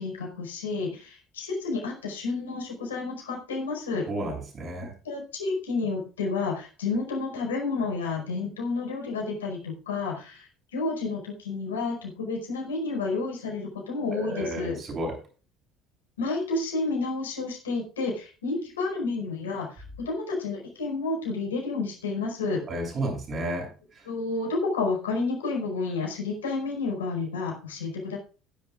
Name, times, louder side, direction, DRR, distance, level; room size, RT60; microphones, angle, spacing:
voice 1, 0.0-4.1 5.0-14.8 16.2-22.6 24.0-28.2, left 3 dB, 80° left, 0 dB, 5.0 m, -30 dB
voice 2, 4.1-4.9 14.1-15.2 22.7-24.1, right 1 dB, 40° right, 2 dB, 7.3 m, -32 dB
18.0 x 10.5 x 2.5 m, 0.35 s
figure-of-eight pair, 60°, 0 cm